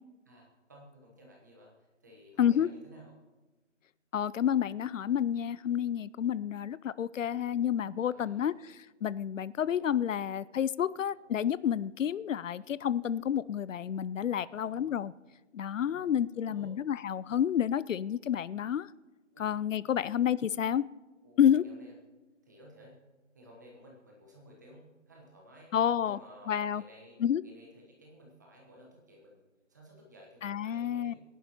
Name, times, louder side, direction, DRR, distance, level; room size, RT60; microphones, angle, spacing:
voice 1, 0.2-3.1 8.0-8.6 11.0-11.2 14.4-14.9 15.8-16.7 19.3-19.5 19.8-20.1 21.2-21.9 22.4-22.9 23.3-25.7 26.0-31.2, equal, 15° right, -2 dB, 1.1 m, -55 dB
voice 2, 2.4-2.7 4.1-15.1 15.5-18.9 19.4-20.9 21.4-21.6 25.7-26.2 26.5-26.8 27.2-27.4 30.4-31.1, left 9 dB, 80° left, 19 dB, 0.5 m, -29 dB
24.5 x 11.0 x 2.9 m, 1.2 s
hypercardioid pair, 170°, 38 cm